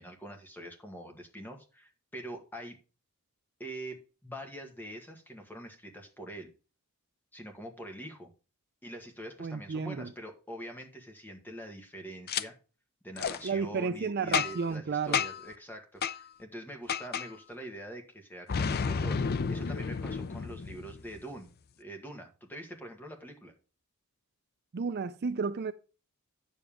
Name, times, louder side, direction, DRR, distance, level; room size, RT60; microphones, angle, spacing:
voice 1, 0.0-2.8 3.6-6.5 7.3-8.3 8.8-12.5 13.0-21.5 21.8-23.5, right 1 dB, 10° left, 1.7 m, -44 dB
voice 2, 9.4-10.1 13.4-15.2 24.7-25.7, right 5 dB, 45° right, 0.4 m, -32 dB
Boom, 12.3-12.4 13.2-13.4 14.3-14.7 15.1-15.5 16.0-16.2 16.9-17.3 18.5-21.2, left 6 dB, 45° left, 0.5 m, -31 dB
9.5 x 7.2 x 3.6 m
head